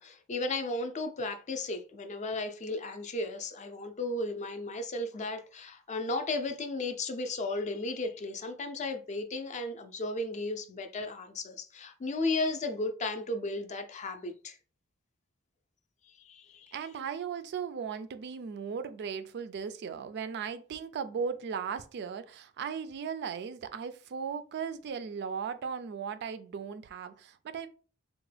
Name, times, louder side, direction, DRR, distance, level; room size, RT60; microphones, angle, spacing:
voice 1, 0.0-14.6 16.0-16.7, left 2 dB, 35° left, 0.4 m, -35 dB
voice 2, 16.7-27.7, right 6 dB, 50° right, 0.3 m, -37 dB
3.5 x 2.2 x 3.2 m
head